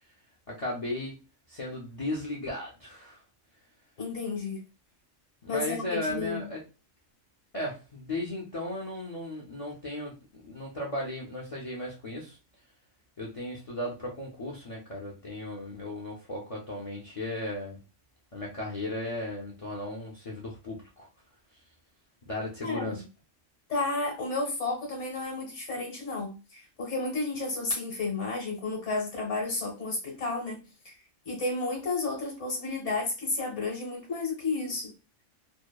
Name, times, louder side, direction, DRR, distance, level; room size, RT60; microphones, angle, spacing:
voice 1, 0.5-1.1 1.5-3.2 5.4-6.6 7.5-12.4 13.2-17.8 18.3-21.1 22.2-23.0, left 1 dB, 40° left, 0.5 m, -36 dB
voice 2, 4.0-4.6 5.5-6.4 22.6-23.0 23.7-30.9 31.2-34.9, left 3 dB, 65° left, 1.3 m, -32 dB
2.8 x 2.1 x 2.3 m
omnidirectional pair, 1.4 m